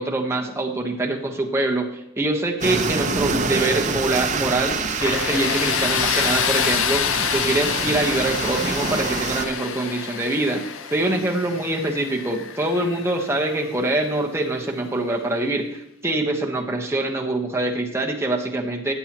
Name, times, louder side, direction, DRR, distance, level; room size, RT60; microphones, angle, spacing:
voice 1, 0.0-1.9 2.2-7.0 7.3-18.9, right 2 dB, 15° right, 1 dB, 1.2 m, -24 dB
sound 1, 2.6-9.5, right 4 dB, 35° right, 0.8 m, -26 dB
Tools, 5.0-13.8, left 7 dB, 65° left, 0.7 m, -26 dB
15.0 x 8.8 x 3.1 m, 0.83 s
head